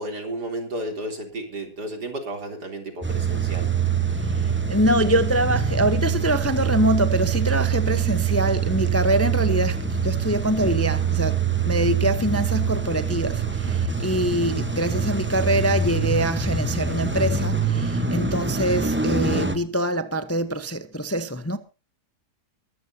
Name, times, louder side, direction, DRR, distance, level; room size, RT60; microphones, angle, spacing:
voice 1, 0.0-3.7, right 1 dB, 85° right, 4.2 m, -32 dB
Car / Engine starting / Idling, 3.0-19.6, right 6 dB, 10° right, 1.0 m, -24 dB
voice 2, 4.3-21.6, equal, 15° left, 0.6 m, -24 dB
23.0 x 13.5 x 2.9 m
omnidirectional pair, 1.7 m